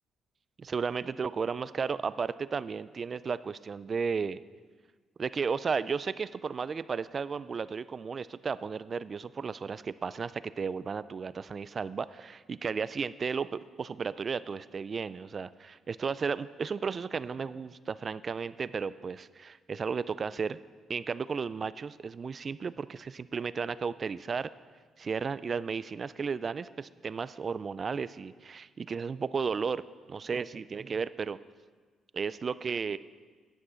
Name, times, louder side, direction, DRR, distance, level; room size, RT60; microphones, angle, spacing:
voice 1, 0.6-4.4 5.2-20.6 20.9-24.5 25.0-31.4 32.1-33.0, right 5 dB, 40° right, 17 dB, 0.3 m, -34 dB
10.5 x 6.2 x 5.6 m, 1.5 s
cardioid pair, 90°, 0 cm